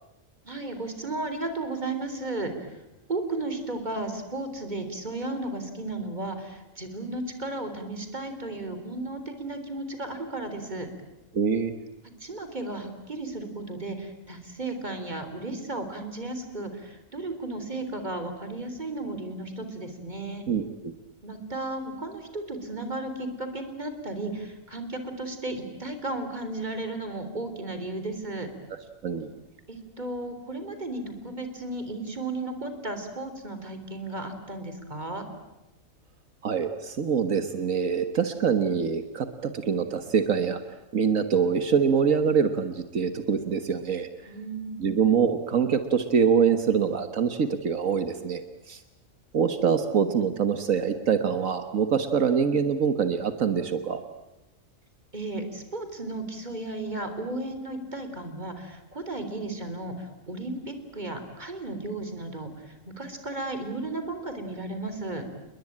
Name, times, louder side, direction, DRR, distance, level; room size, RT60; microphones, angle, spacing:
voice 1, 0.5-2.5 3.1-10.9 12.2-20.5 21.2-28.5 29.7-35.3 44.3-44.9 55.1-65.2, right 2 dB, 35° right, 8 dB, 3.8 m, -34 dB
voice 2, 11.3-11.8 20.5-20.9 29.0-29.3 36.4-40.6 40.9-44.1 44.8-48.4 48.7-48.8 49.3-54.0, right 6 dB, 80° right, 8 dB, 1.7 m, -24 dB
29.5 x 21.5 x 8.8 m, 0.97 s
omnidirectional pair, 1.4 m